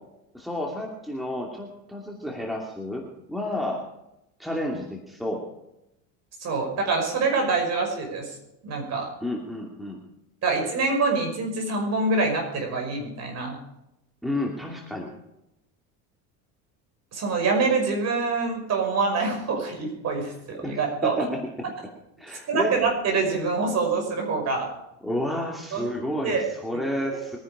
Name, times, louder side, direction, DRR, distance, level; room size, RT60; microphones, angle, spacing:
voice 1, 0.3-3.8 4.4-5.4 9.2-10.0 14.2-15.1 20.6-21.4 22.2-22.7 25.0-27.4, left 1 dB, ahead, 0 dB, 2.5 m, -31 dB
voice 2, 6.4-8.3 8.6-9.1 10.4-13.6 17.1-21.1 22.5-24.7 25.7-25.9 26.2-26.4 27.1-27.4, right 4 dB, 40° right, 2 dB, 5.7 m, -25 dB
23.0 x 10.0 x 5.0 m, 0.87 s
supercardioid pair, 125°, 40 cm